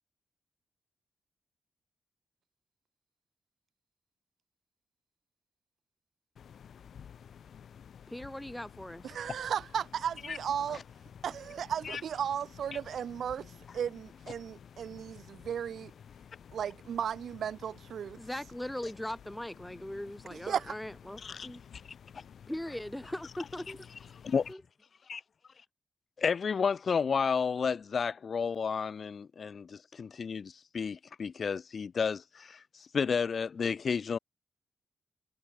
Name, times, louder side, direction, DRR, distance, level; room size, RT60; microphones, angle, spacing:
sound 1, 6.4-24.5, left 8 dB, 65° left, 2.1 m, -53 dB
voice 1, 8.1-9.2 18.2-21.6 22.5-23.9 24.5-24.6, left 1 dB, 5° left, 1.5 m, -40 dB
voice 2, 9.0-10.8 11.2-15.9 16.5-18.2 20.3-20.7, right 8 dB, 75° right, 1.0 m, -35 dB
voice 3, 26.2-34.2, left 6 dB, 45° left, 0.4 m, -32 dB
wide cardioid pair, 160°, 0 cm